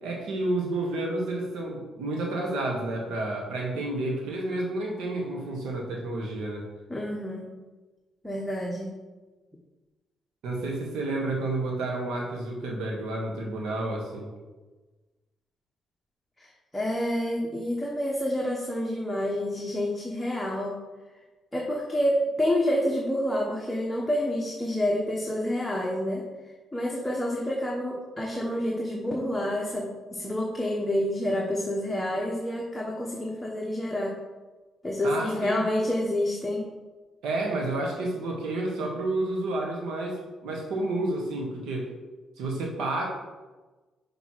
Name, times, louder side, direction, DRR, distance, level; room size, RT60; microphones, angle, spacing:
voice 1, 0.0-6.6 10.4-14.3 35.0-35.6 37.2-41.9 42.4-43.1, right 2 dB, 85° right, 0 dB, 1.6 m, -30 dB
voice 2, 6.9-7.5 8.2-8.9 16.4-16.5 16.7-20.8 21.5-26.2 26.7-34.1 34.8-36.7, left 1 dB, 10° left, -3 dB, 1.1 m, -28 dB
6.1 x 5.1 x 4.8 m, 1.2 s
cardioid pair, 90°, 0 cm